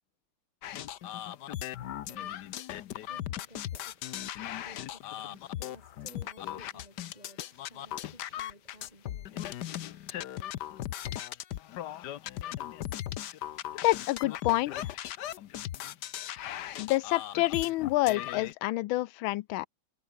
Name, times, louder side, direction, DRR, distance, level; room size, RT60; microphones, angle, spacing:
sound 1, 0.6-18.5, left 12 dB, 65° left, 1.3 m, -38 dB
voice 1, 0.8-10.7, right 1 dB, 20° right, 7.3 m, -57 dB
voice 2, 13.8-14.9 16.8-19.7, left 17 dB, 85° left, 1.4 m, -28 dB
omnidirectional pair, 2.2 m